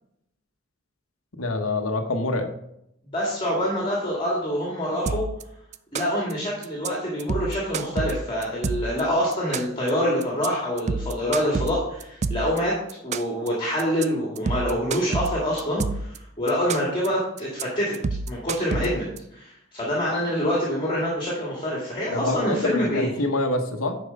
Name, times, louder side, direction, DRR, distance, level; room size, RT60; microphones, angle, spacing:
voice 1, 1.4-2.5 22.1-24.0, left 2 dB, 90° left, 6 dB, 1.1 m, -26 dB
voice 2, 3.1-5.3 5.9-12.8 13.0-17.9 18.3-19.1 19.3-23.1, equal, 25° left, -4 dB, 2.0 m, -26 dB
sound 1, 5.1-5.4 5.7-6.3 6.6-6.9 7.2-9.0 9.3-9.9 10.2-10.5 10.8-12.6 12.9-13.5 13.8-14.0 14.4-16.2 16.5-17.1 17.4-17.6 17.9-19.2, right 4 dB, 35° right, 0.4 m, -28 dB
10.0 x 4.6 x 5.2 m, 0.77 s
head